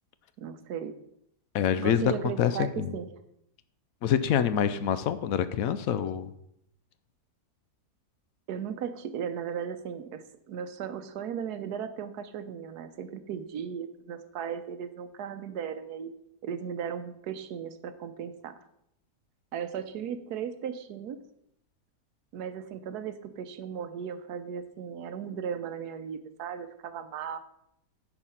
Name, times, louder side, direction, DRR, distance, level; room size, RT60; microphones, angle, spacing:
voice 1, 0.4-0.9 1.8-3.1 8.5-16.1 16.4-18.5 19.5-21.2 22.3-27.4, right 8 dB, 90° right, 10 dB, 1.3 m, -36 dB
voice 2, 1.5-2.9 4.0-6.3, left 9 dB, 70° left, 13 dB, 1.0 m, -26 dB
9.9 x 4.7 x 5.7 m, 0.78 s
omnidirectional pair, 1.6 m